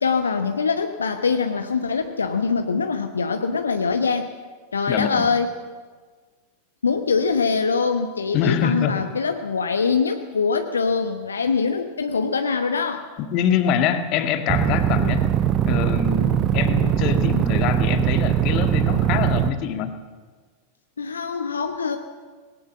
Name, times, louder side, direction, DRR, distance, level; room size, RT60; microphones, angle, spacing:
voice 1, 0.0-4.3 4.7-5.5 6.8-13.1 21.0-22.0, left 5 dB, 75° left, 7 dB, 1.0 m, -23 dB
voice 2, 4.9-5.3 8.3-9.1 13.2-15.3 15.7-19.9, left 8 dB, 40° left, 7 dB, 1.8 m, -24 dB
sound 1, 14.5-19.5, right 10 dB, 30° right, 1.0 m, -21 dB
19.5 x 18.0 x 7.5 m, 1.5 s
figure-of-eight pair, 90°, 0 cm